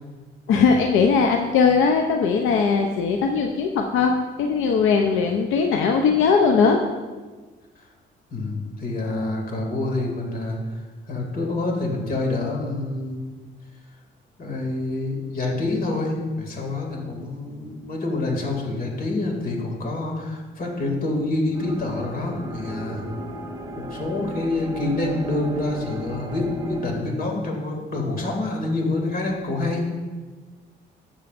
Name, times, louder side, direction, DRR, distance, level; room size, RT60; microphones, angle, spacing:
voice 1, 0.5-6.8, left 5 dB, 85° left, 3 dB, 0.6 m, -19 dB
voice 2, 8.3-13.2 14.4-23.0 23.8-29.9, left 2 dB, 45° left, 1 dB, 2.3 m, -27 dB
sound 1, 21.5-26.9, equal, 15° right, 1.4 m, -35 dB
13.0 x 7.2 x 2.5 m, 1.3 s
cardioid pair, 90°, 20 cm